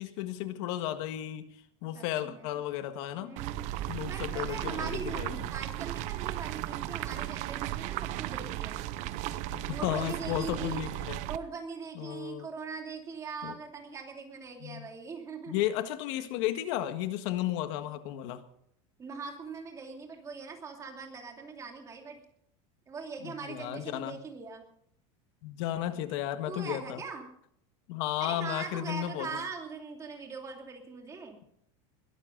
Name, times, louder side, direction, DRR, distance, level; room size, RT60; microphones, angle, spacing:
voice 1, 0.0-1.5 1.8-3.3 3.9-5.4 9.5-11.2 11.9-12.5 13.4-13.5 14.6-14.9 15.5-18.4 23.2-24.2 25.4-27.0 27.9-29.3, left 12 dB, 65° left, 9 dB, 1.6 m, -34 dB
voice 2, 1.9-2.5 3.2-3.6 4.1-8.8 9.7-10.8 11.2-15.6 19.0-22.2 22.9-24.6 26.5-27.3 28.2-31.4, right 5 dB, 20° right, 2 dB, 2.8 m, -41 dB
sound 1, 3.4-11.4, right 14 dB, 45° right, 0.8 m, -35 dB
21.5 x 13.5 x 3.9 m, 0.69 s
supercardioid pair, 165°, 16 cm